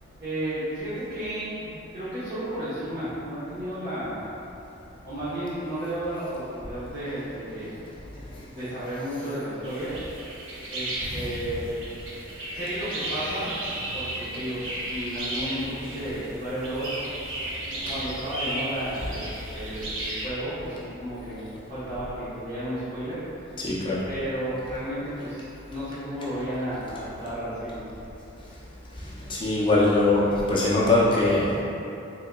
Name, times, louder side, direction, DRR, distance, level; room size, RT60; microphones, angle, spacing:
voice 1, 0.2-4.2 5.0-7.8 8.5-9.9 10.7-11.6 12.5-13.4 13.9-17.0 17.6-23.2 24.0-27.8, right 1 dB, 50° right, -16 dB, 1.0 m, -33 dB
sound 1, 9.6-20.3, right 1 dB, 75° right, 0.8 m, -34 dB
voice 2, 23.6-24.0 29.3-31.5, left 2 dB, 25° left, -7 dB, 0.5 m, -22 dB
3.6 x 3.6 x 2.3 m, 2.9 s
head